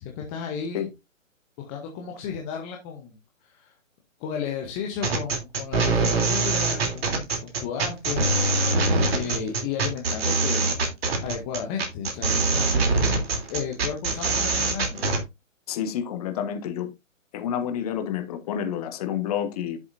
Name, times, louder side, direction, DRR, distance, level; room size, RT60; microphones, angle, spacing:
voice 1, 0.0-0.9 1.6-3.7 4.2-8.2 9.1-10.8 11.2-12.7 13.5-15.0, left 7 dB, 10° left, 0.7 m, -33 dB
sound 1, 5.0-15.2, right 3 dB, 50° right, 3.2 m, -23 dB
voice 2, 15.7-16.9 17.3-19.8, left 9 dB, 30° left, 1.3 m, -29 dB
11.0 x 7.1 x 2.6 m
figure-of-eight pair, 135°, 40 cm